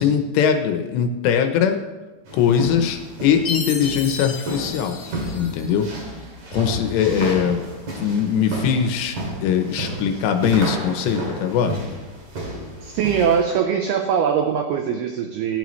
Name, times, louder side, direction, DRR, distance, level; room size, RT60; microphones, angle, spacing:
voice 1, 0.0-1.8 2.3-5.0 5.4-5.9 6.5-7.6 8.0-9.2 9.4-11.8, left 8 dB, 75° left, 6 dB, 2.9 m, -21 dB
sound 1, 2.3-13.5, right 1 dB, 45° right, 3.5 m, -32 dB
Chime, 3.4-5.9, left 4 dB, 60° left, 1.8 m, -33 dB
voice 2, 12.8-15.6, right 7 dB, 75° right, 5 dB, 2.4 m, -21 dB
19.5 x 10.0 x 3.2 m, 1.2 s
omnidirectional pair, 5.3 m